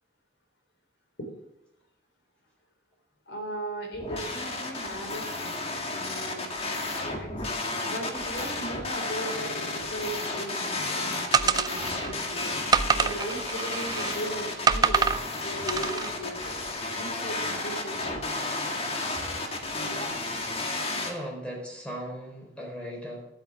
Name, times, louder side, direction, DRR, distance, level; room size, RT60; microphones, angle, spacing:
voice 1, 3.3-5.6 5.9-6.5 7.1-7.3 7.8-12.5 12.9-15.1 15.4-16.5 16.9-18.1 19.9-20.3, right 1 dB, 70° left, 1 dB, 4.2 m, -37 dB
sound 1, 3.9-21.1, left 2 dB, 35° left, 1.8 m, -32 dB
sound 2, 11.3-12.1 12.7-14.2 14.7-15.2 15.7-16.1, right 5 dB, 20° right, 0.4 m, -25 dB
voice 2, 21.1-23.3, equal, 5° left, -2 dB, 4.4 m, -38 dB
12.0 x 8.4 x 7.4 m, 0.86 s
head